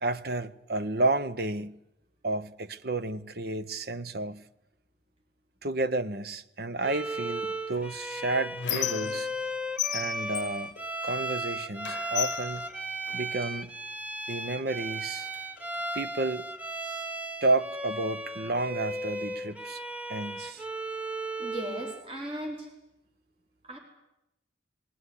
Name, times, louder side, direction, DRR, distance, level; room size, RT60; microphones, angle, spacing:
voice 1, 0.0-1.7 2.2-4.4 5.6-9.3 9.9-10.7 11.0-12.7 13.1-13.7 14.3-15.3 15.9-16.4 17.4-19.8 20.1-20.6, right 2 dB, 55° right, 0.9 m, -31 dB
Bowed string instrument, 6.8-22.0, right 1 dB, 10° right, 0.9 m, -36 dB
Squeak, 7.7-9.5 9.8-11.4 11.8-13.5 14.3-14.4 14.8-15.8, left 11 dB, 75° left, 0.7 m, -36 dB
voice 2, 21.4-22.7 23.6-23.8, equal, 30° right, 4.0 m, -37 dB
20.5 x 17.0 x 9.9 m
head